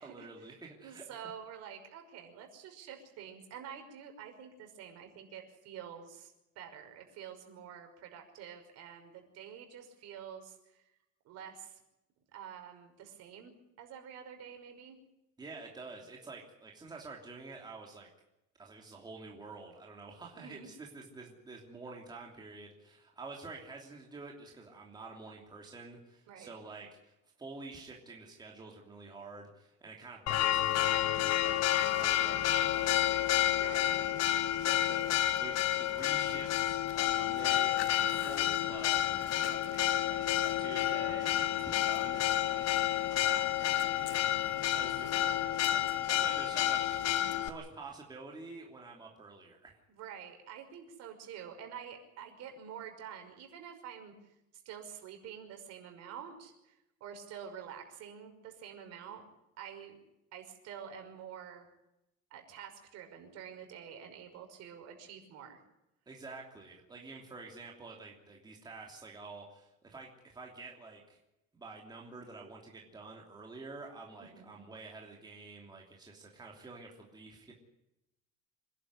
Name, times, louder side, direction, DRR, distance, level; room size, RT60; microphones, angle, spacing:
voice 1, 0.0-1.2 15.4-18.1 18.6-39.0 39.4-39.8 40.1-44.2 44.6-49.8 66.1-71.2 71.5-77.5, right 3 dB, 15° right, -1 dB, 3.0 m, -49 dB
voice 2, 0.8-10.8 11.2-11.8 12.3-15.0 20.3-20.7 26.3-26.5 33.6-34.1 49.9-54.1 54.7-56.7 57.0-59.2 59.6-60.0 60.3-61.7 62.3-65.6 74.3-74.6, right 8 dB, 60° right, 5 dB, 5.7 m, -48 dB
Church bell, 30.3-47.5, left 13 dB, 60° left, 1.3 m, -30 dB
26.5 x 11.5 x 9.7 m, 0.90 s
cardioid pair, 170°, 30 cm